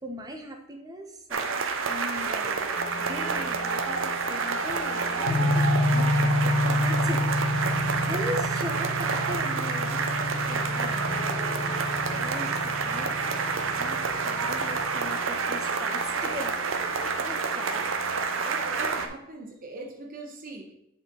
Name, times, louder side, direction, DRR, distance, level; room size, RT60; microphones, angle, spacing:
voice 1, 0.0-2.7 3.0-7.2 8.1-11.7 12.1-16.9 17.2-17.8, equal, 20° right, 3 dB, 0.9 m, -39 dB
sound 1, 1.3-19.1, right 4 dB, 65° right, 0.7 m, -29 dB
sound 2, 2.7-18.9, right 1 dB, 40° left, 0.8 m, -43 dB
sound 3, 5.3-15.0, left 1 dB, 70° left, 0.8 m, -29 dB
voice 2, 18.4-20.7, right 2 dB, 40° right, 2 dB, 1.2 m, -41 dB
7.8 x 4.5 x 3.9 m, 0.81 s
head